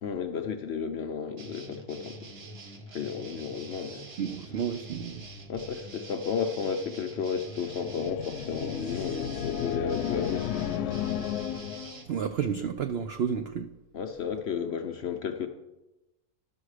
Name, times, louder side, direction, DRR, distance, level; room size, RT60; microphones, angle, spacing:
voice 1, 0.0-2.2 2.9-4.1 5.5-10.9 13.9-15.5, left 6 dB, 60° left, 6 dB, 0.7 m, -33 dB
sound 1, 1.4-12.0, right 2 dB, 50° right, 1.3 m, -45 dB
voice 2, 4.2-5.3 12.1-13.7, right 7 dB, 75° right, 8 dB, 0.5 m, -31 dB
sound 2, 7.4-12.0, left 10 dB, 85° left, 1.1 m, -33 dB
12.0 x 6.3 x 4.8 m, 1.0 s
omnidirectional pair, 1.6 m